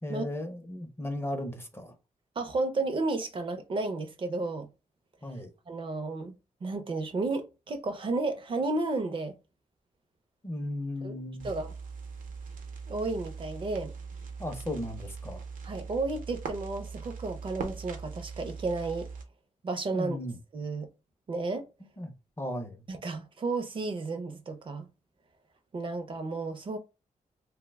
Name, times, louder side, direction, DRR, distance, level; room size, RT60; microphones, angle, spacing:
voice 1, 0.0-1.9 5.2-5.5 10.4-11.5 14.4-15.4 19.9-20.4 22.0-22.8, left 1 dB, 15° left, 0.5 m, -36 dB
voice 2, 2.4-4.7 5.7-6.3 6.6-9.4 11.0-11.2 11.4-11.7 12.9-13.9 15.6-19.1 19.6-20.2 20.5-20.9 21.3-21.7 22.9-24.9 25.7-26.8, right 3 dB, 40° right, 0.4 m, -32 dB
sound 1, 11.4-19.2, right 5 dB, 85° right, 0.7 m, -41 dB
2.8 x 2.0 x 3.3 m
wide cardioid pair, 125°, 13 cm